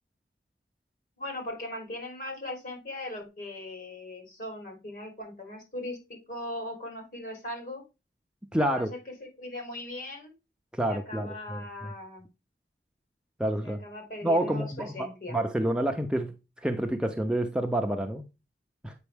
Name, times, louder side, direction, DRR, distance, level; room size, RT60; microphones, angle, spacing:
voice 1, 1.2-6.0 6.3-7.8 8.7-10.3 10.9-12.3 13.6-15.4, left 1 dB, 50° left, 3.5 m, -39 dB
voice 2, 8.5-8.9 10.7-11.6 13.4-13.8 14.2-16.3 16.6-18.2 18.8-18.9, right 1 dB, 5° right, 0.5 m, -28 dB
8.1 x 5.2 x 3.4 m
head